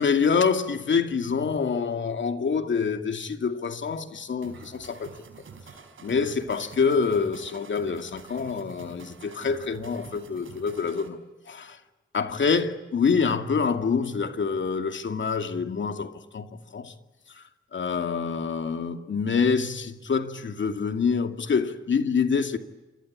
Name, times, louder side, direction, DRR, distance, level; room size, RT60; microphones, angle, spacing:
voice 1, 0.0-5.1 6.0-11.8 12.1-16.9 17.3-17.4 17.7-22.6, left 5 dB, 70° left, 2.4 m, -26 dB
sound 1, 4.4-11.1, right 5 dB, 80° right, 5.0 m, -47 dB
29.0 x 24.0 x 8.7 m
cardioid pair, 60°, 20 cm